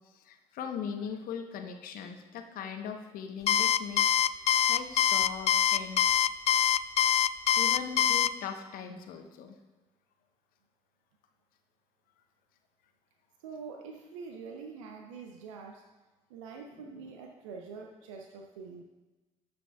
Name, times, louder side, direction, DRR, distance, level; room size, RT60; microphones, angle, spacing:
voice 1, 0.1-4.2 4.7-6.0 7.6-9.6 17.0-17.1, left 7 dB, 65° left, 5 dB, 1.0 m, -40 dB
Alarm, 3.5-8.3, left 10 dB, 40° left, 0.4 m, -24 dB
voice 2, 13.4-15.9 16.3-18.8, right 5 dB, 80° right, 3 dB, 0.7 m, -45 dB
18.0 x 6.1 x 2.4 m, 1.2 s
hypercardioid pair, 50°, 16 cm